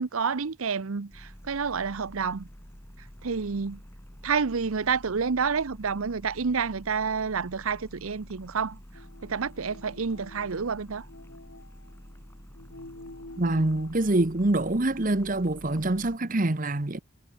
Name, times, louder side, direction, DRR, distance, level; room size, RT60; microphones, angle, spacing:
voice 1, 0.0-2.5 3.2-3.8 4.2-8.8 9.2-11.0, right 5 dB, 85° right, 0.7 m, -29 dB
sound 1, 1.1-16.2, equal, 10° left, 2.7 m, -49 dB
sound 2, 8.9-14.2, left 2 dB, 65° left, 2.5 m, -49 dB
voice 2, 13.4-17.0, right 2 dB, 40° right, 1.1 m, -25 dB
head